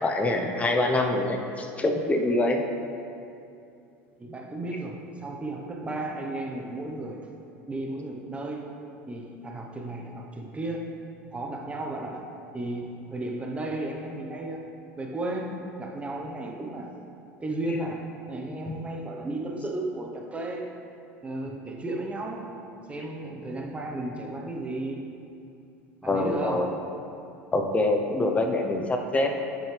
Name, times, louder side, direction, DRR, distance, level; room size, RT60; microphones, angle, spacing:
voice 1, 0.0-2.6 17.7-17.8 26.0-26.7 27.5-29.3, left 2 dB, 20° left, 3 dB, 0.8 m, -25 dB
voice 2, 4.2-7.3 7.7-8.8 9.1-10.9 11.3-12.3 12.5-14.7 15.0-17.0 17.4-20.8 21.2-22.6 22.9-25.0 26.0-26.8, right 2 dB, 15° right, 1 dB, 1.0 m, -34 dB
8.6 x 6.1 x 3.4 m, 2.6 s
supercardioid pair, 100°, 7 cm